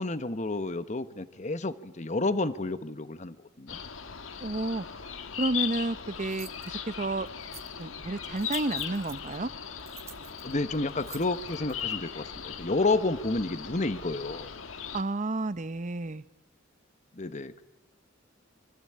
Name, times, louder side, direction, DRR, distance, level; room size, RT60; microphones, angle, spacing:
voice 1, 0.0-3.8 10.4-14.5 17.1-17.6, left 2 dB, 35° left, 12 dB, 1.1 m, -30 dB
sound 1, 3.7-15.0, left 8 dB, 85° left, 1.5 m, -38 dB
voice 2, 4.4-4.9 5.4-7.3 7.8-9.5 14.9-16.2, right 2 dB, 40° right, 14 dB, 0.8 m, -31 dB
sound 2, 5.4-5.5 6.2-6.7 7.3-7.8 8.2-9.4 9.8-11.9, right 5 dB, 15° right, 1.0 m, -48 dB
26.0 x 24.5 x 8.7 m, 1.0 s
head